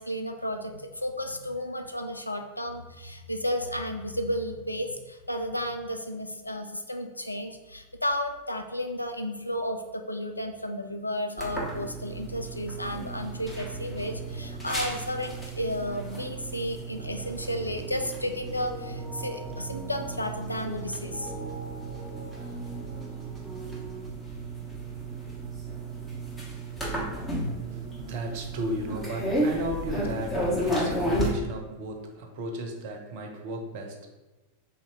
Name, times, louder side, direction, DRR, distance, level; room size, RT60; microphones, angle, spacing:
voice 1, 0.0-21.3, left 1 dB, 85° left, 5 dB, 0.4 m, -33 dB
sound 1, 11.4-31.3, right 1 dB, 15° left, 1.4 m, -34 dB
sound 2, 17.0-24.1, right 1 dB, 15° right, 0.9 m, -43 dB
voice 2, 27.6-34.1, equal, 50° right, 3 dB, 0.7 m, -35 dB
3.4 x 2.8 x 4.6 m, 1.1 s
figure-of-eight pair, 90°, 0 cm